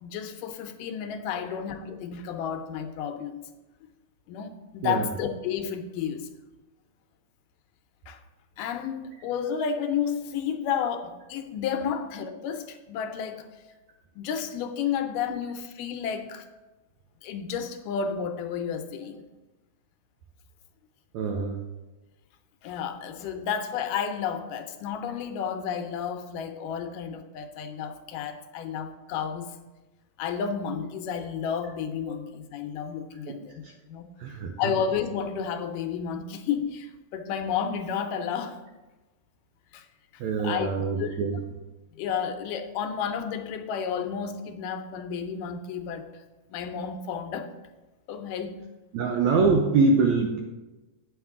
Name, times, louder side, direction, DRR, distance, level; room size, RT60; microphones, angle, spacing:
voice 1, 0.0-3.4 4.3-6.3 8.1-8.2 8.6-13.5 14.2-16.5 17.2-19.2 22.6-29.5 30.2-34.1 34.6-38.6 39.7-39.9 40.1-40.7 41.0-41.5 42.0-46.1 46.5-47.5 48.1-48.6, left 7 dB, 80° left, 7 dB, 2.1 m, -31 dB
voice 2, 21.1-21.6 33.3-33.7 34.2-34.7 40.2-41.4 48.9-50.4, right 4 dB, 80° right, 2 dB, 1.6 m, -24 dB
9.0 x 7.3 x 3.5 m, 1.1 s
omnidirectional pair, 4.0 m